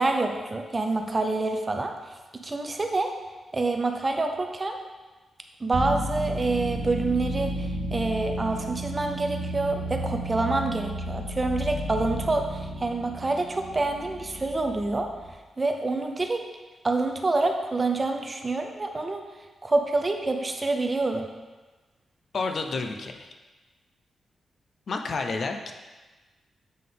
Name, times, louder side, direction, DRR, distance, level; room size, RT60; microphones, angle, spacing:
voice 1, 0.0-2.2 2.4-3.2 3.5-4.8 5.6-15.1 15.6-16.4 16.8-19.2 19.6-21.3, right 2 dB, 20° right, 4 dB, 0.5 m, -27 dB
sound 1, 5.7-15.3, right 1 dB, 60° right, 0.7 m, -33 dB
voice 2, 22.3-23.3 24.9-25.7, left 3 dB, 45° left, 5 dB, 0.4 m, -30 dB
7.5 x 3.6 x 3.8 m, 1.2 s
wide cardioid pair, 150°, 0 cm